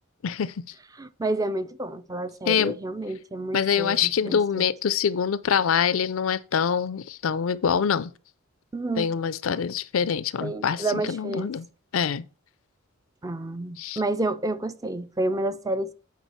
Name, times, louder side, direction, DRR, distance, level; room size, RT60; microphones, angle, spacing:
voice 1, 0.2-0.6 2.5-2.7 3.5-8.1 9.0-11.7 11.9-12.2 13.8-14.0, left 7 dB, 70° left, 0.5 m, -25 dB
voice 2, 1.0-4.7 8.7-9.1 10.4-11.5 13.2-15.9, right 2 dB, 15° right, 0.4 m, -29 dB
9.2 x 4.9 x 4.5 m
head